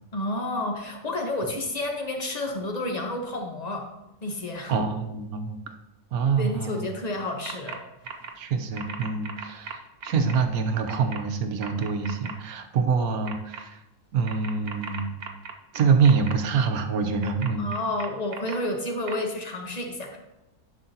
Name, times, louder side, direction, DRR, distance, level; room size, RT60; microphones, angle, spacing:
voice 1, 0.1-3.9 4.2-4.7 6.4-7.8 17.6-20.2, left 1 dB, 30° left, 3 dB, 1.1 m, -30 dB
voice 2, 4.7-5.6 6.1-6.9 8.4-9.8 10.0-13.7 14.1-15.1 15.7-17.7, right 5 dB, 80° right, 6 dB, 1.3 m, -25 dB
sound 1, 7.4-7.8 8.0-8.3 8.7-10.4 10.9-11.2 11.6-12.3 13.2-13.6 14.2-16.3 17.2-18.5 19.1-19.2, right 6 dB, 50° right, 0.8 m, -37 dB
11.0 x 5.6 x 2.8 m, 0.97 s
omnidirectional pair, 1.6 m